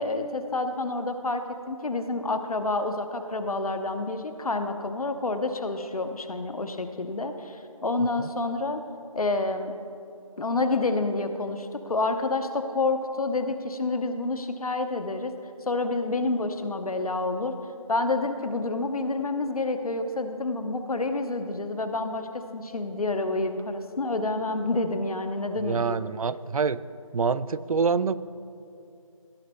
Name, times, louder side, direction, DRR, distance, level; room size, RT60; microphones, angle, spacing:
voice 1, 0.0-8.8 9.1-9.7 10.4-15.3 15.7-17.5 17.9-26.0, left 2 dB, 80° left, 7 dB, 0.9 m, -28 dB
voice 2, 25.6-26.8 27.1-28.2, right 5 dB, 75° right, 17 dB, 0.4 m, -26 dB
16.0 x 8.4 x 2.3 m, 2.5 s
figure-of-eight pair, 175°, 18 cm